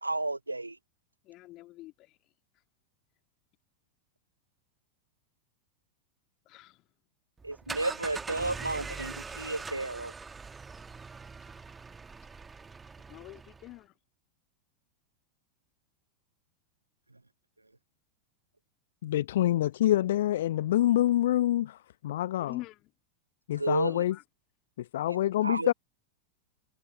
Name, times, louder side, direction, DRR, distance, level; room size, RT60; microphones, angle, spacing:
voice 1, 0.0-0.8 7.4-10.1 23.6-24.1 25.4-25.7, right 2 dB, 85° right, 0.5 m, -32 dB
voice 2, 1.3-2.2 6.5-6.8 13.1-13.9 22.4-22.8 23.9-24.2, left 18 dB, 40° left, 1.9 m, -45 dB
sound 1, 7.4-13.8, right 4 dB, 15° right, 1.2 m, -42 dB
voice 3, 19.0-21.8 22.0-22.6 23.5-24.2 24.9-25.7, left 13 dB, 60° left, 0.9 m, -26 dB
figure-of-eight pair, 90°, 0 cm